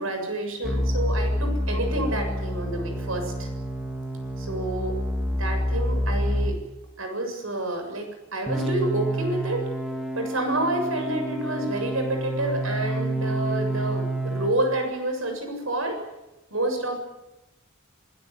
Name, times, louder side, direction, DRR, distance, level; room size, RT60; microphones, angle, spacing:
voice 1, 0.0-3.5 4.4-5.0 5.3-6.6 7.0-9.6 10.1-16.0 16.5-17.0, right 1 dB, 75° right, 5 dB, 7.2 m, -29 dB
sound 1, 0.6-6.6 8.5-14.6, equal, ahead, 3.3 m, -28 dB
26.5 x 17.0 x 9.6 m, 0.98 s
head